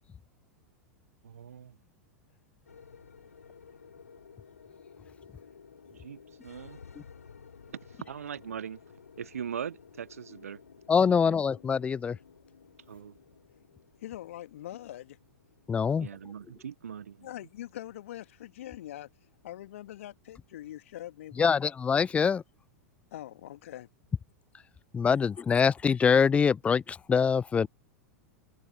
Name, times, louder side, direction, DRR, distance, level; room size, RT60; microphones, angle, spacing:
voice 1, 1.2-1.8 6.0-6.8 7.9-8.8 9.2-10.6 11.2-11.3 12.9-13.2 16.0-17.3, right 8 dB, 70° right, 1.3 m, -40 dB
sound 1, 2.7-21.0, left 6 dB, 75° left, 3.7 m, -55 dB
voice 2, 10.9-12.2 15.7-16.1 21.4-22.4 24.9-27.7, left 6 dB, 15° left, 0.4 m, -24 dB
voice 3, 14.0-15.2 17.2-19.1 19.4-21.6 23.1-23.9, left 13 dB, 60° left, 2.1 m, -43 dB
figure-of-eight pair, 90°, 8 cm